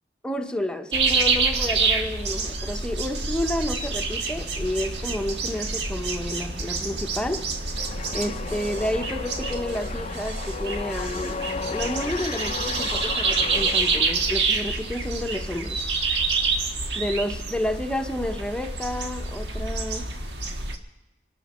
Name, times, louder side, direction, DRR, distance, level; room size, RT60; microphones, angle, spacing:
voice 1, 0.2-7.5 7.8-7.9 8.1-11.5 11.7-15.8 17.0-20.1, left 1 dB, 5° left, 0.8 m, -30 dB
sound 1, 0.9-20.8, right 4 dB, 75° right, 1.5 m, -27 dB
sound 2, 7.8-14.5, left 5 dB, 40° left, 0.5 m, -34 dB
26.5 x 12.0 x 4.3 m
head